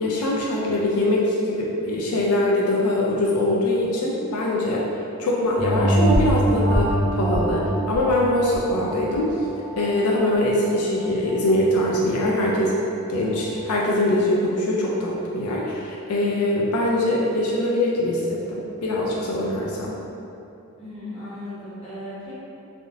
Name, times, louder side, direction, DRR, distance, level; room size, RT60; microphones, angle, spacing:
voice 1, 0.0-4.8 5.2-9.4 9.8-12.7 13.1-20.0, left 1 dB, 80° left, -4 dB, 0.4 m, -23 dB
sound 1, 5.6-10.5 11.0-11.1, right 1 dB, 40° right, 0.7 m, -23 dB
voice 2, 20.8-22.3, left 1 dB, 25° left, -10 dB, 0.9 m, -36 dB
3.3 x 2.6 x 2.4 m, 2.8 s
head